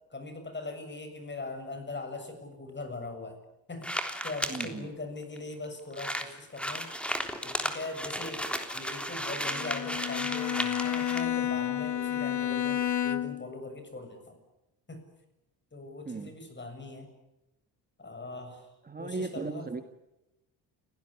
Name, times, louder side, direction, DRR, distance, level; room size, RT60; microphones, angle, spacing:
voice 1, 0.1-3.4 3.7-6.9 7.4-14.4 14.9-15.1 15.7-17.1 18.0-18.7 19.0-19.7, left 2 dB, 25° left, 8 dB, 7.3 m, -41 dB
sound 1, 3.8-4.7 5.4-5.5 5.6-5.7 5.9-11.2, equal, 5° left, 3.5 m, -34 dB
voice 2, 4.5-4.9 16.1-16.3 18.8-19.8, right 3 dB, 20° right, 7 dB, 1.8 m, -36 dB
Bowed string instrument, 9.5-13.5, left 11 dB, 45° left, 1.2 m, -30 dB
29.5 x 17.5 x 9.9 m, 0.95 s
cardioid pair, 95°, 41 cm